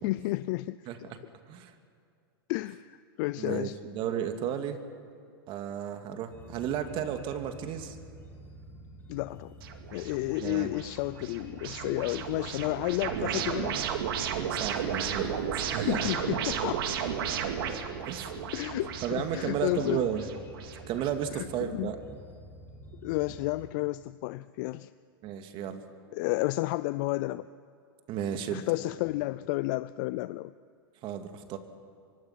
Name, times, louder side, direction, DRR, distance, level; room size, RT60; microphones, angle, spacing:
voice 1, 0.0-0.8 2.5-3.8 9.1-9.5 9.9-13.8 15.9-17.1 18.5-20.0 21.3-21.9 23.0-24.9 26.1-27.5 28.5-30.5, left 20 dB, 50° left, 16 dB, 0.5 m, -31 dB
voice 2, 3.4-4.8 5.5-8.0 10.4-10.7 13.1-13.4 14.5-16.1 17.7-18.3 19.0-20.3 20.9-22.0 25.2-25.8 28.1-28.6 31.0-31.6, right 9 dB, 40° right, 7 dB, 2.3 m, -33 dB
sound 1, 6.3-23.7, right 1 dB, 15° left, 3.4 m, -49 dB
sound 2, 9.6-21.1, right 8 dB, 65° right, 2.4 m, -34 dB
24.5 x 23.5 x 5.9 m, 2.4 s
hypercardioid pair, 115°, 13 cm